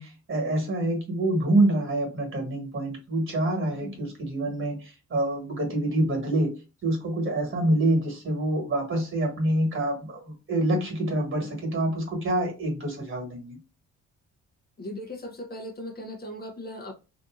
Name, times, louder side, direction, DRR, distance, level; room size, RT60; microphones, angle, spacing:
voice 1, 0.0-6.5 6.8-13.6, right 1 dB, 40° right, 2 dB, 1.4 m, -26 dB
voice 2, 14.8-16.9, left 1 dB, 30° left, 2 dB, 0.7 m, -38 dB
2.7 x 2.5 x 2.3 m, 0.30 s
cardioid pair, 90°, 30 cm